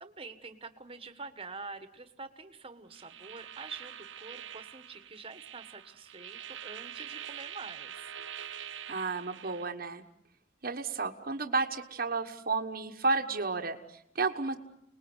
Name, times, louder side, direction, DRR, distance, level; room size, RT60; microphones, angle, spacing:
voice 1, 0.0-8.1, right 4 dB, 30° right, 9 dB, 1.4 m, -46 dB
sound 1, 2.9-9.7, right 9 dB, 85° right, 0.9 m, -45 dB
voice 2, 8.9-10.0 10.6-14.6, right 3 dB, 50° right, 4 dB, 1.3 m, -32 dB
29.0 x 20.0 x 8.0 m, 0.77 s
head